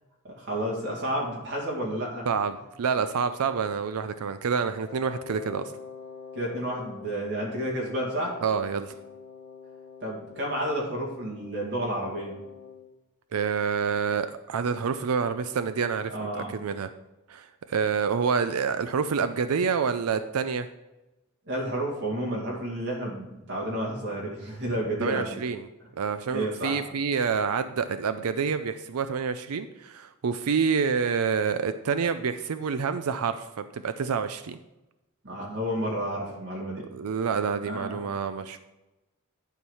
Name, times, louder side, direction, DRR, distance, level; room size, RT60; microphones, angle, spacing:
voice 1, 0.2-2.3 6.3-8.4 10.0-12.3 16.1-16.5 21.5-25.4 26.3-26.8 35.2-36.8 37.6-38.0, right 1 dB, 55° right, -3 dB, 2.4 m, -31 dB
voice 2, 2.3-5.7 8.4-9.0 13.3-16.9 17.3-20.7 25.0-25.7 26.0-34.6 36.9-38.6, right 6 dB, 90° right, 10 dB, 0.5 m, -28 dB
Wind instrument woodwind instrument, 4.8-12.9, left 5 dB, 35° left, 2.8 m, -45 dB
11.5 x 4.7 x 5.5 m, 1.0 s
head